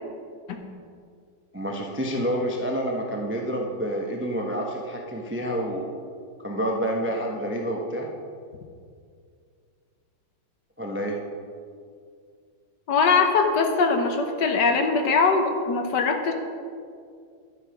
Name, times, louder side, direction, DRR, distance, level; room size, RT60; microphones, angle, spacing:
voice 1, 1.5-5.9 6.4-8.1 10.8-11.2, equal, 15° right, 0 dB, 0.4 m, -28 dB
voice 2, 12.9-16.3, left 4 dB, 65° left, 4 dB, 1.5 m, -21 dB
11.0 x 7.8 x 5.0 m, 2.2 s
omnidirectional pair, 2.1 m